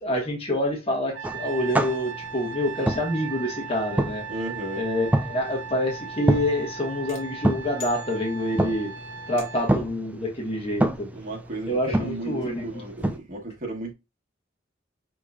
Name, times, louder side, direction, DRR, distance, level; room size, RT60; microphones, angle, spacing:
voice 1, 0.0-4.3 4.8-8.9 9.3-11.1 11.7-12.6, left 1 dB, 30° left, 1.2 m, -27 dB
Trumpet, 1.1-9.7, right 6 dB, 70° right, 0.6 m, -38 dB
sound 1, 1.2-13.2, right 1 dB, 10° right, 0.3 m, -29 dB
voice 2, 4.3-4.9 11.1-12.3 12.6-13.9, right 2 dB, 40° right, 1.1 m, -34 dB
sound 2, 7.1-8.7 9.4-9.9, left 3 dB, 80° left, 1.3 m, -45 dB
5.2 x 3.0 x 2.3 m
head